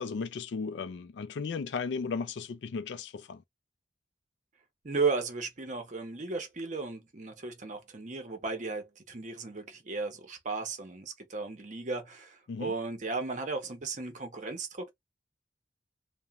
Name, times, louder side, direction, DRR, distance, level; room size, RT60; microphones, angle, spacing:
voice 1, 0.0-3.4 12.5-12.7, left 5 dB, 75° left, 0.4 m, -35 dB
voice 2, 4.8-14.9, right 4 dB, 40° right, 0.6 m, -35 dB
2.9 x 2.1 x 2.3 m
head